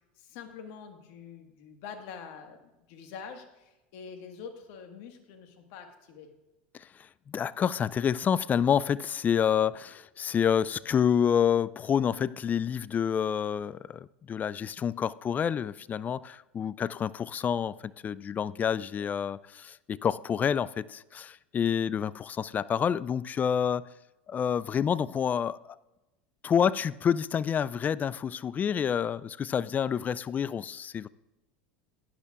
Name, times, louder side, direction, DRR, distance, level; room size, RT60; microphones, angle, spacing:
voice 1, 0.1-6.3, left 6 dB, 60° left, 1.6 m, -45 dB
voice 2, 7.3-23.9 24.3-25.7 26.4-31.1, left 8 dB, 25° left, 0.3 m, -28 dB
16.0 x 10.5 x 2.4 m
hypercardioid pair, 90°, 6 cm